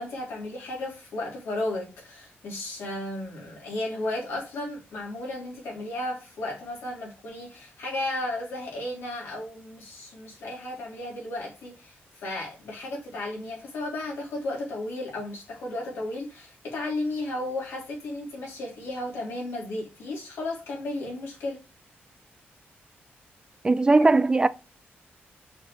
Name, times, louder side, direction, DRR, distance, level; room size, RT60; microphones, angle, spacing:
voice 1, 0.0-21.6, left 1 dB, 90° left, 3.4 m, -34 dB
voice 2, 23.6-24.5, right 3 dB, 20° right, 0.4 m, -19 dB
6.6 x 4.4 x 3.2 m
wide cardioid pair, 135°, 4 cm